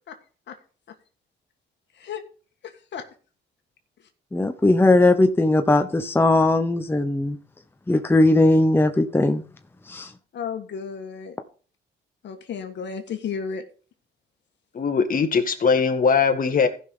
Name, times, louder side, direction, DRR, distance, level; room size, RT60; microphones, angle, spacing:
voice 1, 2.6-3.1 10.3-11.4 12.2-13.6, left 6 dB, 65° left, 1.6 m, -33 dB
voice 2, 4.3-7.4 7.9-9.4 9.9-10.1, left 2 dB, 10° left, 0.8 m, -19 dB
voice 3, 14.7-16.7, left 5 dB, 45° left, 1.8 m, -20 dB
15.5 x 5.8 x 3.8 m
cardioid pair, 90°, 20 cm